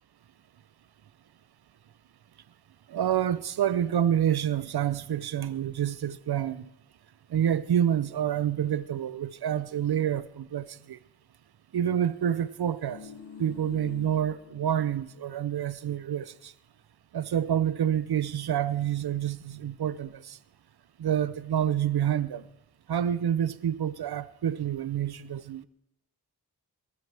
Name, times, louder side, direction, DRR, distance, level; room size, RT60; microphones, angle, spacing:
voice 1, 2.9-6.7 7.3-11.0 11.7-13.0 13.4-16.5 17.1-20.4 21.0-22.5 22.9-25.7, right 10 dB, 65° right, 0.7 m, -28 dB
sound 1, 12.5-15.2 15.5-15.6, left 6 dB, 85° left, 1.4 m, -47 dB
22.0 x 13.5 x 3.5 m
cardioid pair, 50°, 41 cm